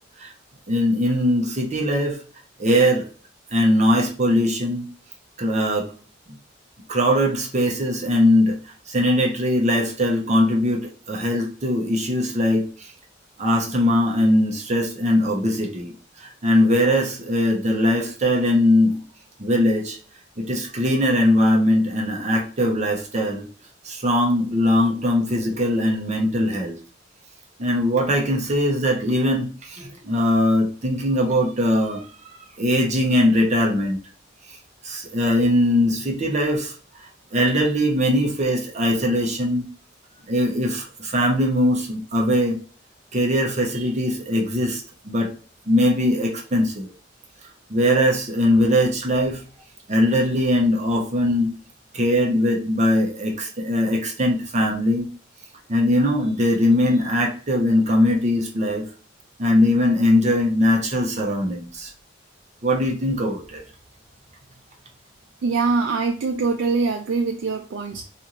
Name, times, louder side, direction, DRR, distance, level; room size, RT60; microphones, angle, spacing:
voice 1, 0.7-2.2 2.6-3.1 3.5-4.9 5.4-5.9 6.9-8.6 8.9-12.7 13.4-15.9 16.2-19.0 19.4-20.0 20.4-23.5 23.8-26.8 27.6-32.1 32.6-34.0 34.8-36.7 37.3-39.7 40.3-42.6 43.1-45.3 45.7-46.9 47.7-49.4 49.9-51.5 51.9-55.1 55.7-58.9 59.4-61.9 62.6-63.6, left 1 dB, 35° right, 0 dB, 0.6 m, -20 dB
voice 2, 65.4-68.1, right 4 dB, 80° right, 3 dB, 0.3 m, -23 dB
2.6 x 2.4 x 2.8 m, 0.40 s
head